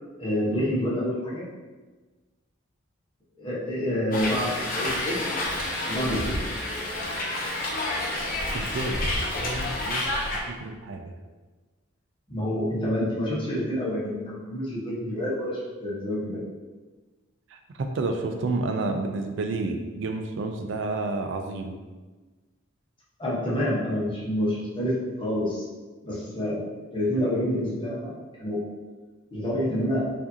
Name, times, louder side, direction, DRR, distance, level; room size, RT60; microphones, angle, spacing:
voice 1, 0.2-1.4 3.4-5.2 5.9-6.4 12.3-16.4 23.2-25.6 26.0-28.7 29.3-30.1, equal, 25° left, -7 dB, 1.1 m, -28 dB
Hiss, 4.1-10.4, left 1 dB, 45° left, 0.7 m, -29 dB
voice 2, 8.5-9.0 9.4-10.1 10.3-11.1 17.5-21.8, right 3 dB, 65° right, 4 dB, 0.4 m, -30 dB
4.8 x 2.6 x 2.7 m, 1.3 s
head